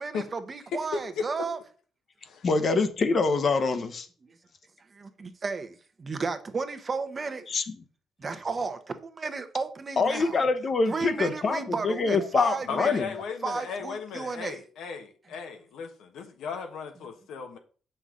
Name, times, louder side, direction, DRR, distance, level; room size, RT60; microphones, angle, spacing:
voice 1, 0.0-1.6 4.2-4.3 4.9-7.4 8.2-10.4 10.9-13.0 13.4-14.6, right 4 dB, 35° right, 0.9 m, -33 dB
voice 2, 0.7-1.3 2.2-2.5 12.7-17.6, left 5 dB, 80° left, 1.1 m, -36 dB
voice 3, 2.4-4.1 7.5-7.6 10.0-13.1, left 4 dB, 45° left, 1.0 m, -25 dB
7.0 x 5.6 x 3.7 m
cardioid pair, 90°, 0 cm